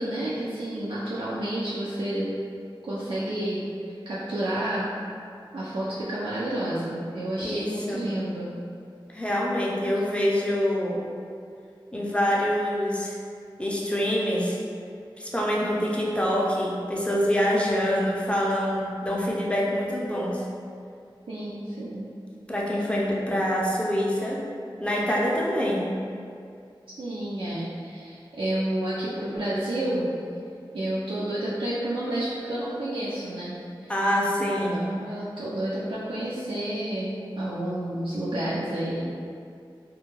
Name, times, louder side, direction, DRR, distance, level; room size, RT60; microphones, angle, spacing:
voice 1, 0.0-2.3 2.8-3.7 4.1-4.9 5.5-8.5 21.3-22.1 27.0-30.1 30.7-33.9 34.4-39.0, right 1 dB, 70° right, -9 dB, 0.4 m, -30 dB
voice 2, 7.4-8.1 9.1-11.1 11.9-13.2 13.6-14.6 15.2-20.5 22.5-24.4 24.8-25.9 33.9-34.9, equal, 15° left, -4 dB, 0.5 m, -25 dB
2.3 x 2.1 x 3.0 m, 2.4 s
wide cardioid pair, 40°, 9 cm